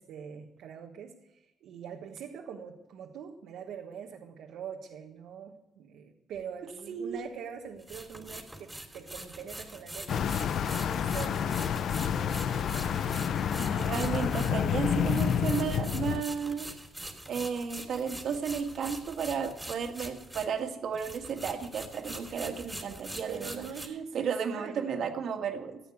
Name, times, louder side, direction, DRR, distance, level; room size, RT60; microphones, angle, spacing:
voice 1, 0.0-10.3 10.9-11.6 23.3-25.2, right 7 dB, 80° right, 1 dB, 1.3 m, -43 dB
sound 1, 6.4-6.5 7.8-20.7 20.9-23.9, right 1 dB, 10° right, 3.1 m, -44 dB
voice 2, 6.9-7.2 13.0-13.1 13.6-16.7 17.3-23.6 24.1-25.8, right 6 dB, 65° right, 5 dB, 1.9 m, -33 dB
sound 2, 10.1-16.2, left 8 dB, 65° left, 0.7 m, -29 dB
14.5 x 8.9 x 8.5 m, 0.98 s
cardioid pair, 90°, 0 cm